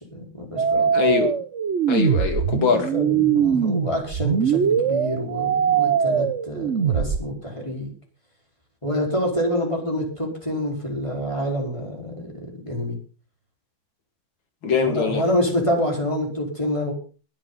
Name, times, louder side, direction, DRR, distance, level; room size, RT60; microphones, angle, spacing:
voice 1, 0.0-0.9 2.6-7.9 8.8-13.0 14.8-16.9, equal, 15° left, 0 dB, 4.8 m, -27 dB
sound 1, 0.6-7.2, right 8 dB, 50° right, 0.9 m, -22 dB
voice 2, 0.9-1.3 1.9-2.9 14.6-15.2, left 5 dB, 75° left, 6 dB, 3.2 m, -22 dB
20.5 x 10.5 x 4.1 m, 0.37 s
omnidirectional pair, 2.1 m